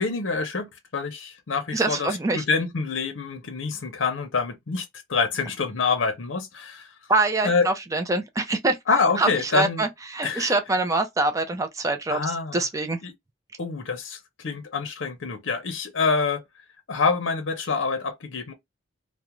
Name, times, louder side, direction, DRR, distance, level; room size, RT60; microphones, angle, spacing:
voice 1, 0.0-6.9 7.4-7.7 8.9-9.8 10.2-10.5 12.1-12.6 13.0-13.1 13.6-16.4 16.9-18.5, left 4 dB, 75° left, 0.6 m, -26 dB
voice 2, 1.7-2.4 7.1-8.8 9.2-12.2 12.5-13.0, right 2 dB, 15° right, 0.3 m, -24 dB
2.4 x 2.1 x 2.9 m
head